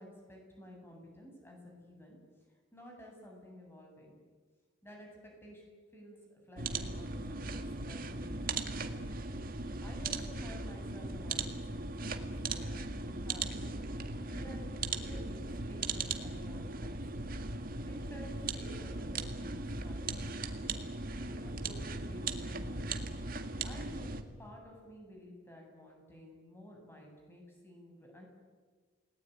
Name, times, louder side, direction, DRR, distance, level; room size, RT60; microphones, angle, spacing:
voice 1, 0.0-2.2 2.7-4.1 4.8-5.1 5.4-5.6 5.9-9.0 9.8-13.8 14.2-14.7 14.9-16.9 17.9-20.8 21.3-22.9 23.6-28.3, equal, 10° left, 0 dB, 7.8 m, -53 dB
sound 1, 6.6-24.2, right 3 dB, 45° right, 1.9 m, -38 dB
30.0 x 19.5 x 9.4 m, 1.5 s
head